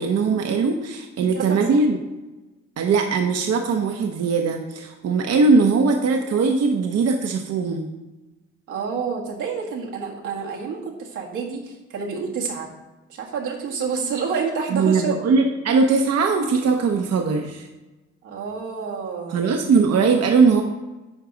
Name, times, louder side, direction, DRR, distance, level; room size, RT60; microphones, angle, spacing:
voice 1, 0.0-2.0 2.8-7.9 14.7-17.7 19.3-20.6, right 4 dB, 55° right, 4 dB, 0.8 m, -20 dB
voice 2, 1.2-1.9 8.7-12.7 13.1-15.1 18.2-19.4, right 5 dB, 90° right, -2 dB, 1.8 m, -29 dB
9.9 x 4.7 x 3.9 m, 1.1 s
cardioid pair, 90°, 30 cm